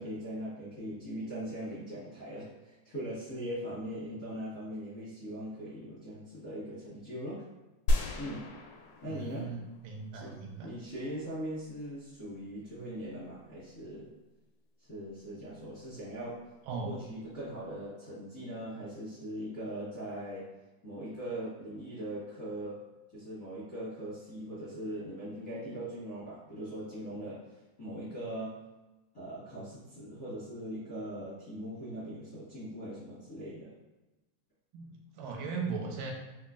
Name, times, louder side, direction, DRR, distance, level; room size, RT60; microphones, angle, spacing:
voice 1, 0.0-7.4 8.1-8.4 9.0-9.5 10.1-14.1 14.9-16.4 16.8-20.5 20.8-22.8 23.1-27.4 27.8-28.6 29.1-33.7, right 1 dB, 65° left, -13 dB, 0.8 m, -40 dB
sound 1, 7.9-10.2, left 1 dB, 80° left, 1.7 m, -32 dB
voice 2, 9.1-10.7 16.7-16.9 34.7-36.1, right 4 dB, 85° right, 0 dB, 2.1 m, -38 dB
4.9 x 2.7 x 2.4 m, 1.1 s
omnidirectional pair, 3.8 m